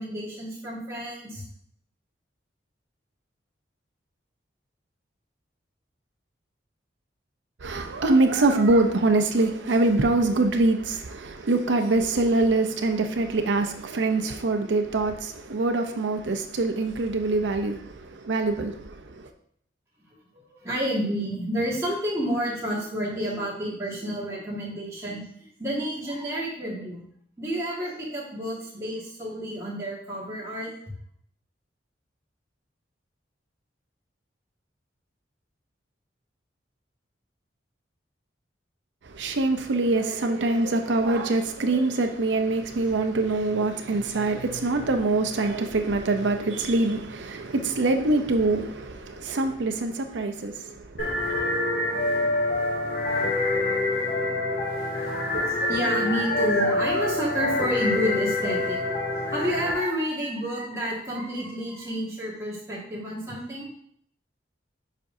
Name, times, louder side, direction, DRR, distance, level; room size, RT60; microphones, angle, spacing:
voice 1, 0.0-1.4 20.3-27.0 27.4-30.7 55.2-58.8 59.3-63.7, equal, 15° right, 1.7 m, -30 dB
voice 2, 7.6-19.3 39.1-51.5, right 2 dB, 75° right, 0.6 m, -24 dB
sound 1, 51.0-59.7, left 2 dB, 50° left, 2.4 m, -26 dB
7.4 x 5.2 x 2.6 m
head